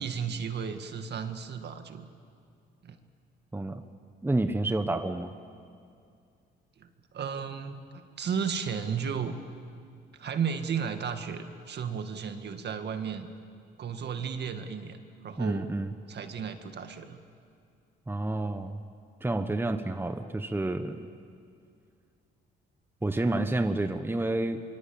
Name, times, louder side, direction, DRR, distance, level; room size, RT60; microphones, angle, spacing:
voice 1, 0.0-2.1 2.8-3.0 6.8-6.9 7.1-9.4 10.1-13.3 13.8-15.0 15.2-15.7 16.1-17.2, right 6 dB, 60° right, 7 dB, 2.0 m, -34 dB
voice 2, 3.5-3.8 4.2-5.3 15.4-15.9 18.1-18.8 19.2-21.0 23.0-24.6, right 2 dB, 10° right, 8 dB, 1.3 m, -29 dB
24.5 x 23.5 x 8.8 m, 2.4 s
cardioid pair, 90°, 20 cm